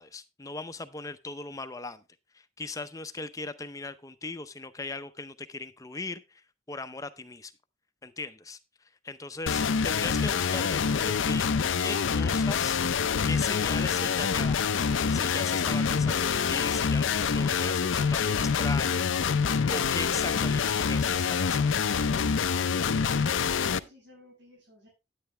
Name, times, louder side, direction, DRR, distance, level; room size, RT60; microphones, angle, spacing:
voice 1, 0.0-2.0 2.3-7.5 8.0-8.6 9.0-11.5 11.8-12.8 13.2-14.7 15.1-19.4 19.7-21.7, left 3 dB, 20° left, 11 dB, 0.6 m, -38 dB
sound 1, 9.5-23.8, left 6 dB, 90° left, 0.5 m, -26 dB
voice 2, 22.8-24.9, equal, 75° right, -5 dB, 6.0 m, -55 dB
9.7 x 9.3 x 3.2 m, 0.25 s
head